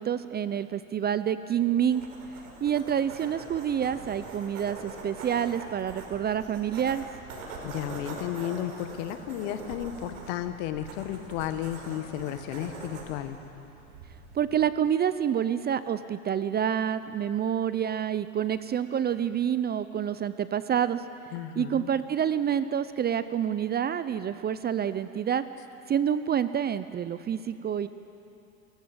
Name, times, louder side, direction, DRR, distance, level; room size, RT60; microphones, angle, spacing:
voice 1, 0.0-2.1 2.6-7.1 14.3-21.0 21.6-25.4 25.9-27.9, right 9 dB, 25° right, 13 dB, 0.6 m, -28 dB
sound 1, 1.8-14.5, right 3 dB, 80° right, 5.2 m, -43 dB
voice 2, 7.6-13.4 21.3-21.9, left 11 dB, 60° left, 9 dB, 1.7 m, -33 dB
28.5 x 15.0 x 8.0 m, 2.9 s
hypercardioid pair, 100°, 42 cm